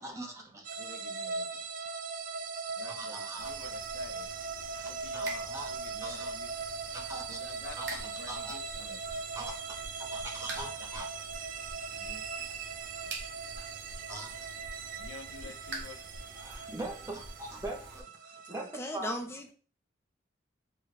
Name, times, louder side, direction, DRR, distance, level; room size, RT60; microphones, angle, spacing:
voice 1, 0.0-0.7 2.9-3.7 4.7-4.8 5.1-5.7 6.0-6.7 6.9-7.4 7.8-8.6 9.3-9.5 10.1-11.2 13.6-13.7 14.1-14.5 16.3-19.1, right 1 dB, 15° right, 0 dB, 0.8 m, -42 dB
sound 1, 0.6-18.8, right 4 dB, 45° right, 0.3 m, -40 dB
voice 2, 0.8-1.6 2.7-4.3 4.9-6.5 7.3-9.0 11.9-12.5 15.0-16.0, left 4 dB, 80° left, 8 dB, 0.5 m, -50 dB
sound 2, 3.4-18.0, right 2 dB, 70° right, 0.9 m, -47 dB
voice 3, 18.2-19.5, equal, 15° left, 4 dB, 0.5 m, -38 dB
4.5 x 2.3 x 3.2 m, 0.39 s
head